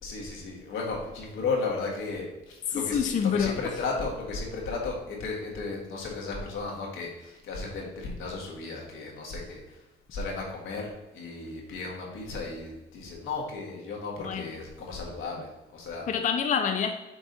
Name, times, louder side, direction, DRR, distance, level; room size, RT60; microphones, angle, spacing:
voice 1, 0.0-9.8 10.1-16.1, left 3 dB, 85° left, 1.6 m, -34 dB
voice 2, 2.7-3.6 14.2-14.5 16.1-16.9, left 7 dB, 40° left, 0.5 m, -27 dB
5.8 x 4.1 x 4.0 m
cardioid pair, 90°, 20 cm